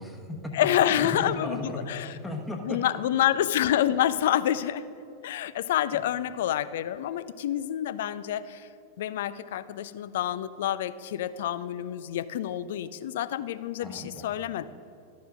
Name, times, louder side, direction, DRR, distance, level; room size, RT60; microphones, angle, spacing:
voice 1, 0.0-0.7 1.0-2.8 5.9-6.0 13.8-14.3, left 1 dB, 5° left, 1 dB, 1.1 m, -36 dB
voice 2, 0.5-2.2 2.6-4.8 5.2-8.7 9.0-14.7, left 11 dB, 55° left, 14 dB, 0.3 m, -28 dB
12.0 x 4.6 x 6.2 m, 2.6 s
figure-of-eight pair, 90°, 0 cm